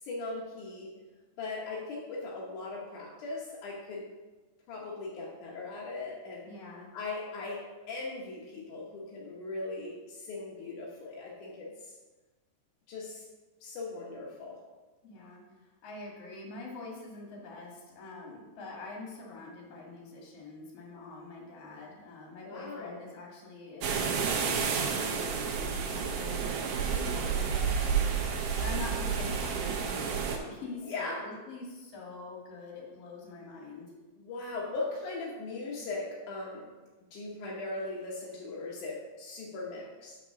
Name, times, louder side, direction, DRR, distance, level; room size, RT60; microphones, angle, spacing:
voice 1, 0.0-0.9 1.4-4.1 4.7-6.5 6.9-11.9 12.9-13.3 13.6-14.6 22.4-23.0 30.8-31.3 34.2-36.7 37.1-40.2, left 3 dB, 75° left, -4 dB, 1.8 m, -39 dB
voice 2, 6.4-6.9 15.0-24.6 25.0-33.9, left 3 dB, 45° left, -2 dB, 2.3 m, -45 dB
sound 1, 23.8-30.4, right 6 dB, 75° right, 2.5 m, -30 dB
6.0 x 5.9 x 5.8 m, 1.2 s
omnidirectional pair, 5.0 m